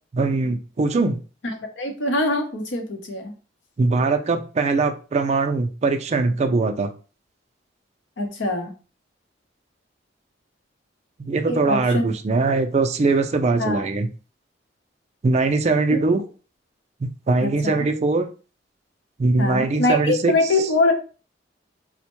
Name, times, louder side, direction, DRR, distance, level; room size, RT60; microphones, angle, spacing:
voice 1, 0.1-1.2 3.8-6.9 11.2-14.1 15.2-16.2 17.0-18.3 19.2-20.3, right 3 dB, 35° right, 7 dB, 0.3 m, -21 dB
voice 2, 1.8-3.3 8.2-8.7 11.4-12.0 13.6-13.8 17.4-17.8 19.4-20.9, left 2 dB, 80° left, 4 dB, 0.7 m, -23 dB
4.3 x 2.1 x 2.9 m, 0.35 s
head